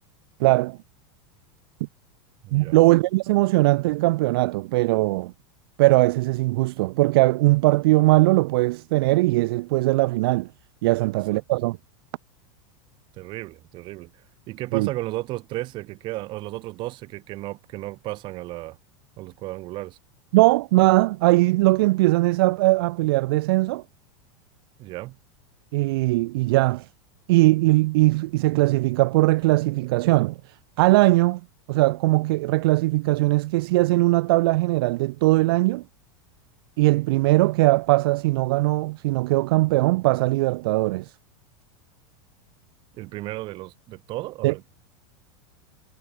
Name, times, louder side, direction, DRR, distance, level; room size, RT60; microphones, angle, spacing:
voice 1, 0.4-0.8 2.5-5.3 5.8-10.5 10.8-11.8 14.7-14.9 20.3-23.8 25.7-26.9 27.3-31.4 31.7-35.8 36.8-41.1 44.4-44.5, right 20 dB, 55° right, 0.5 m, -20 dB
voice 2, 2.4-2.8 11.0-11.4 13.2-14.1 14.5-18.8 19.2-20.0 24.8-25.2 43.0-44.7, right 18 dB, 30° right, 3.1 m, -34 dB
supercardioid pair, 170°, 15 cm